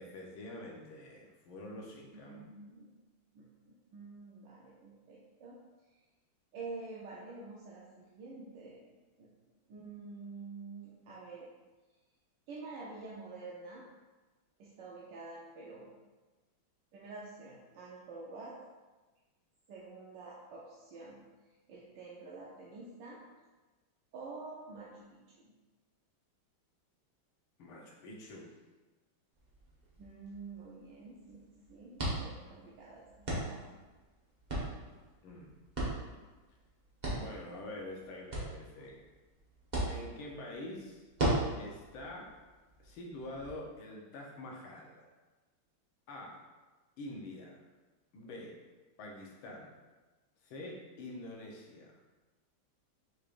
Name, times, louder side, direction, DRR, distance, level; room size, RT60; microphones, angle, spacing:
voice 1, 0.0-2.4 27.6-28.6 35.2-35.5 37.1-39.0 39.9-41.1 41.6-42.3 42.8-45.1 46.1-46.4 47.0-47.6 48.1-48.6 49.0-49.7 50.4-51.9, left 1 dB, 80° left, -2 dB, 1.7 m, -46 dB
voice 2, 1.7-2.9 3.3-5.6 6.5-9.3 9.7-11.5 12.5-13.8 14.6-15.9 16.9-18.6 19.7-21.3 21.7-23.2 24.1-25.5 30.0-33.8, right 3 dB, 70° right, -5 dB, 1.2 m, -48 dB
sound 1, 29.3-43.5, right 1 dB, 30° right, 0.9 m, -39 dB
6.1 x 3.3 x 2.5 m, 1.2 s
omnidirectional pair, 2.2 m